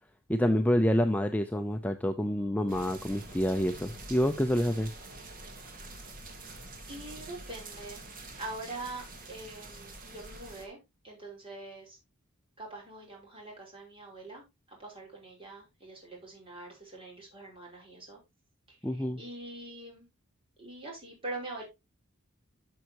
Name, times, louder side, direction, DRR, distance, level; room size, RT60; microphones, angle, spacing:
voice 1, 0.3-4.9 18.8-19.2, equal, 5° left, 0.5 m, -27 dB
sound 1, 2.7-10.7, right 2 dB, 40° right, 2.1 m, -46 dB
voice 2, 6.9-8.1 8.4-10.8 11.0-12.0 12.6-18.2 18.7-20.1 20.6-21.6, right 2 dB, 25° right, 5.2 m, -44 dB
12.5 x 6.4 x 2.9 m
head